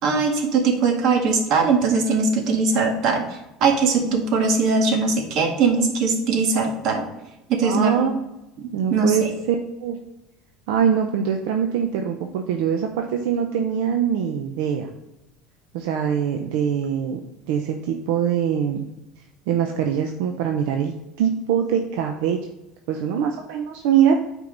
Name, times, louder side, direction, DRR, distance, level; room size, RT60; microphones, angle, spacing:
voice 1, 0.0-3.2 3.6-7.0 7.5-8.1 8.6-9.3, right 4 dB, 55° right, 3 dB, 1.6 m, -20 dB
voice 2, 7.6-8.1 8.7-9.6 9.8-10.0 10.7-14.9 15.7-17.2 17.5-18.9 19.5-20.9 21.2-22.4 22.9-24.3, right 8 dB, 80° right, 4 dB, 0.7 m, -23 dB
8.8 x 4.6 x 3.9 m, 0.93 s
cardioid pair, 145°, 0 cm